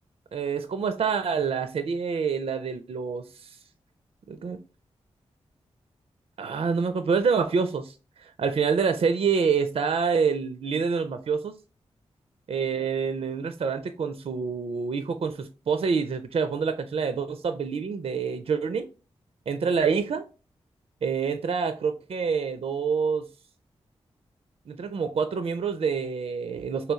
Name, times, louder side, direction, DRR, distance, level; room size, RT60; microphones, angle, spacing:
voice 1, 0.3-3.6 4.3-4.6 6.4-11.6 12.5-18.9 19.5-20.2 21.0-23.3 24.7-26.9, right 5 dB, 60° right, 0.4 m, -27 dB
3.1 x 3.0 x 3.5 m
cardioid pair, 45°, 12 cm